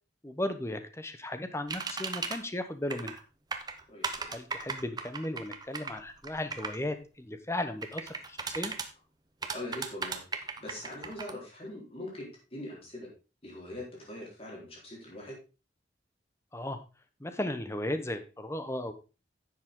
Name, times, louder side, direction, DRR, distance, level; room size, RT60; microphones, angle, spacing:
voice 1, 0.2-3.2 4.3-8.7 16.5-16.8 17.2-18.9, left 1 dB, 15° left, 9 dB, 0.9 m, -35 dB
sound 1, 1.7-2.4 2.9-3.2 3.5-6.8 7.8-8.9 9.4-11.3, right 4 dB, 20° right, 0.9 m, -36 dB
voice 2, 3.9-4.3 9.5-13.1 13.4-15.4, left 1 dB, 30° left, -2 dB, 4.0 m, -42 dB
10.5 x 7.5 x 3.7 m, 0.31 s
head